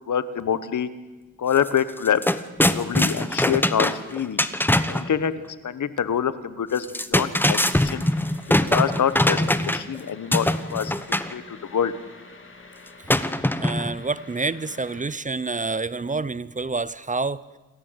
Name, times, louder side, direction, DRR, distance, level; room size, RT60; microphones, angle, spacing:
voice 1, 0.1-0.9 1.4-2.2 2.7-4.4 4.8-5.3 5.6-8.0 8.7-11.9, left 8 dB, 70° left, 14 dB, 1.3 m, -26 dB
sound 1, 1.6-1.7 2.0-5.1 6.8-10.0 10.3-11.3 13.1-14.0, left 1 dB, 5° left, 1.0 m, -22 dB
sound 2, 7.7-15.0, left 3 dB, 40° left, 3.2 m, -47 dB
voice 2, 13.6-17.6, right 3 dB, 25° right, 18 dB, 0.7 m, -28 dB
28.0 x 14.0 x 8.1 m, 1.2 s
cardioid pair, 85°, 31 cm